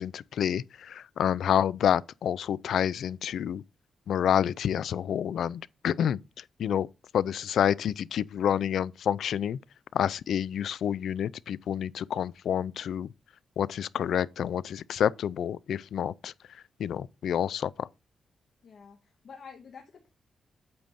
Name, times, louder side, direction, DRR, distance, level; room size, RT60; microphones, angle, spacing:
voice 1, 0.0-3.6 4.1-6.9 7.1-9.6 9.9-13.1 13.6-16.3 16.8-17.9, left 9 dB, 75° left, 0.3 m, -28 dB
voice 2, 18.6-20.1, left 6 dB, 50° left, 1.2 m, -49 dB
8.6 x 7.5 x 2.6 m
wide cardioid pair, 165°, 0 cm